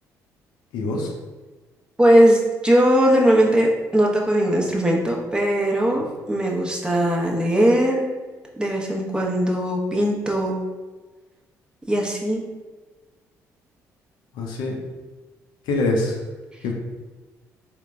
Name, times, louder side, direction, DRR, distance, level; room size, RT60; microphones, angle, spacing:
voice 1, 0.7-1.1 14.3-14.8 15.7-16.2 16.6-16.7, left 2 dB, 75° left, 0 dB, 0.6 m, -24 dB
voice 2, 2.0-8.1 8.6-10.6 11.9-12.4, equal, 10° right, -2 dB, 0.8 m, -19 dB
3.8 x 2.2 x 3.5 m, 1.3 s
hypercardioid pair, 55°, 8 cm